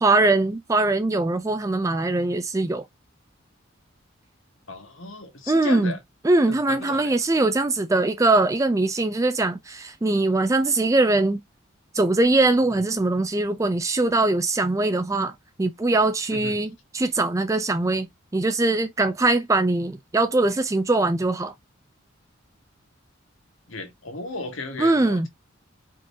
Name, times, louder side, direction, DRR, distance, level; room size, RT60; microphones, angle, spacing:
voice 1, 0.0-2.8 5.5-5.9 6.2-11.4 11.9-15.3 15.6-18.1 18.3-21.5 24.8-25.3, right 2 dB, 15° right, 0.4 m, -22 dB
voice 2, 4.7-6.0 6.5-7.1 12.7-12.8 16.3-16.7 23.7-25.3, left 2 dB, 80° left, 1.7 m, -35 dB
5.0 x 3.8 x 2.7 m
head